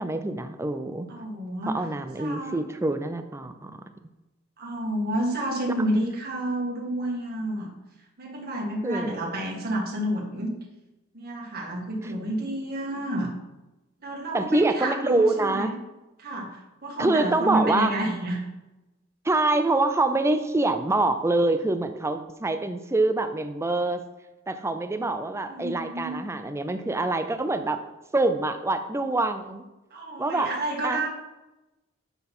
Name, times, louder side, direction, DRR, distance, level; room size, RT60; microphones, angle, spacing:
voice 1, 0.0-1.1 1.7-3.8 8.8-9.3 14.3-15.7 17.0-17.9 19.2-24.0 24.5-27.8 28.1-29.6 30.2-30.5 30.8-31.1, right 2 dB, 15° right, 8 dB, 0.4 m, -25 dB
voice 2, 1.1-1.8 2.2-2.6 4.6-7.7 8.2-10.5 11.1-13.3 14.0-15.7 16.2-18.4 25.4-26.2 29.9-31.1, right 1 dB, 50° right, -2 dB, 1.8 m, -30 dB
9.1 x 4.0 x 5.5 m, 1.0 s
head